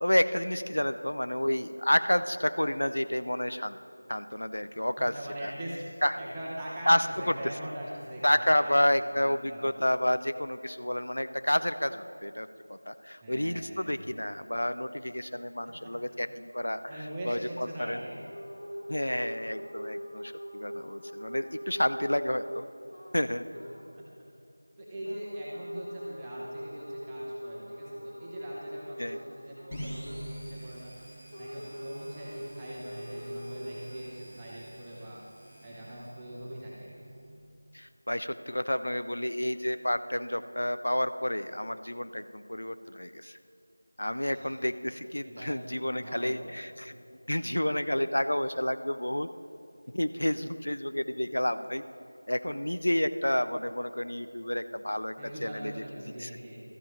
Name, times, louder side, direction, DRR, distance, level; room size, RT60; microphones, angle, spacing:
voice 1, 0.0-3.8 4.1-5.2 5.4-5.5 6.0-6.2 6.9-7.3 8.2-18.0 18.9-22.7 23.1-23.4 29.0-29.2 37.7-43.4 44.0-46.9 47.3-49.3 49.9-51.8 52.3-55.1 55.4-56.3, left 1 dB, 65° left, 11 dB, 0.5 m, -30 dB
voice 2, 5.0-5.8 6.2-8.7 9.1-9.6 13.2-14.1 15.7-15.9 16.9-18.2 23.9-24.3 24.8-30.9 31.4-35.2 35.6-36.9 44.3-44.6 45.2-46.5 55.2-56.6, right 1 dB, 5° right, -8 dB, 1.1 m, -42 dB
sound 1, 18.1-23.2 23.5-23.9 25.0-30.4 31.3-34.0, equal, 85° left, 2.4 m, -42 dB
sound 2, 29.7-37.3, equal, 10° left, 2.1 m, -46 dB
16.0 x 13.0 x 3.3 m, 2.6 s
figure-of-eight pair, 170°, 0 cm